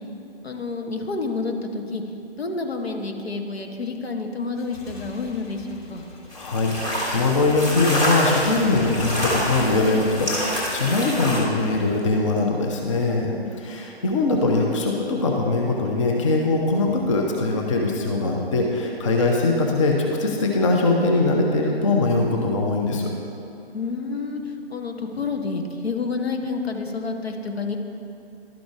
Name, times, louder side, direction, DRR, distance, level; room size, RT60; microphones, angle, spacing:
voice 1, 0.4-2.0 2.4-6.0 13.3-14.0 23.7-24.4 24.7-27.8, left 4 dB, 70° left, 3 dB, 1.0 m, -29 dB
Motorcycle / Engine, 4.6-12.1, left 2 dB, 45° left, 1.6 m, -40 dB
voice 2, 6.3-23.1, left 3 dB, 30° left, 0 dB, 0.6 m, -22 dB
sound 1, 6.3-11.4, equal, 10° left, 1.0 m, -27 dB
12.0 x 5.0 x 3.5 m, 2.7 s
figure-of-eight pair, 135°, 32 cm